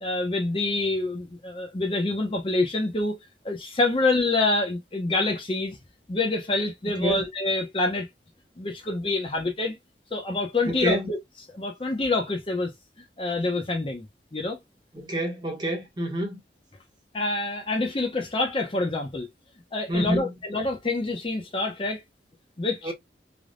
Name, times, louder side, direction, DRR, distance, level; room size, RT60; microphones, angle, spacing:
voice 1, 0.0-3.2 3.4-5.8 6.1-8.1 8.6-9.8 10.1-11.2 11.5-12.7 13.2-14.1 14.3-14.6 17.1-19.3 19.7-22.0 22.6-22.9, left 2 dB, 30° left, 0.6 m, -26 dB
voice 2, 6.9-7.3 10.7-11.1 14.9-16.4 19.9-20.3 22.8-22.9, equal, 25° right, 0.9 m, -28 dB
3.3 x 2.1 x 2.5 m
head